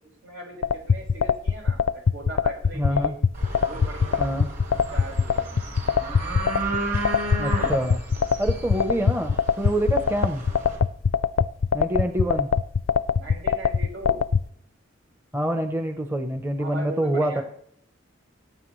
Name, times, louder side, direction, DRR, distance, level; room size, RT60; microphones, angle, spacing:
voice 1, 0.2-3.1 3.6-4.3 4.7-5.7 12.3-12.4 13.1-14.2 16.6-17.4, right 2 dB, 80° right, 0 dB, 6.0 m, -39 dB
sound 1, 0.6-14.4, left 6 dB, 75° left, 0.5 m, -21 dB
voice 2, 2.8-3.1 4.2-4.5 7.4-8.0 8.4-10.5 11.7-12.5 15.3-17.4, right 1 dB, 10° right, 6 dB, 0.8 m, -26 dB
sound 2, 3.3-10.8, right 2 dB, 45° right, 5.1 m, -33 dB
20.5 x 9.9 x 3.2 m, 0.67 s
head